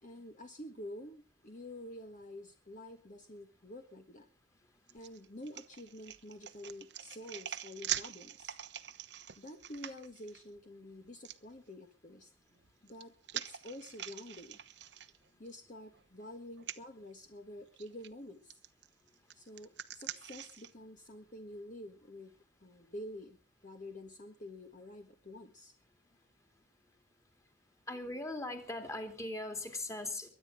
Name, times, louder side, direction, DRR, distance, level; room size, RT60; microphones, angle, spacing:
voice 1, 0.0-4.3 4.9-8.6 9.4-12.3 12.8-14.6 15.4-18.6 19.3-23.4 23.6-25.7, left 1 dB, 45° left, 5 dB, 1.6 m, -48 dB
sound 1, 4.9-10.4 11.2-11.4 12.5-15.6 15.9-16.0 16.6-16.8 17.8-18.1 18.5-20.7, right 10 dB, 85° right, 1.0 m, -44 dB
voice 2, 27.9-30.3, left 2 dB, 20° left, 6 dB, 3.0 m, -39 dB
23.0 x 9.7 x 5.0 m, 0.35 s
head